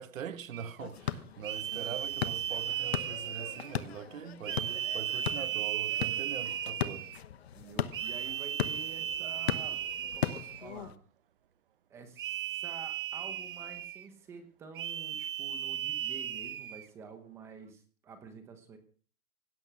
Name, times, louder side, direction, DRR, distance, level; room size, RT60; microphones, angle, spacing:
voice 1, 0.0-7.1, right 8 dB, 60° right, 1.6 m, -43 dB
sound 1, 0.5-0.8 1.4-3.8 4.4-7.2 7.9-10.7 12.2-14.1 14.7-16.8, right 10 dB, 35° right, 1.0 m, -36 dB
sound 2, 0.8-11.0, left 9 dB, 45° left, 1.1 m, -38 dB
voice 2, 7.5-11.0 11.9-18.8, right 5 dB, 5° right, 0.9 m, -49 dB
17.5 x 12.5 x 6.1 m
hypercardioid pair, 175°, 45 cm